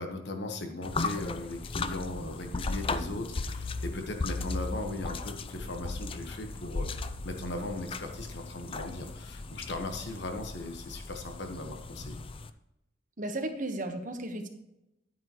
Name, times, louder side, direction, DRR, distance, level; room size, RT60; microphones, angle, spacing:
voice 1, 0.0-12.2, left 2 dB, 60° left, 4 dB, 1.3 m, -38 dB
sound 1, 0.8-12.5, left 3 dB, 30° left, 0.4 m, -36 dB
voice 2, 13.2-14.5, right 1 dB, 40° right, 5 dB, 1.2 m, -34 dB
10.0 x 9.5 x 3.0 m, 0.90 s
head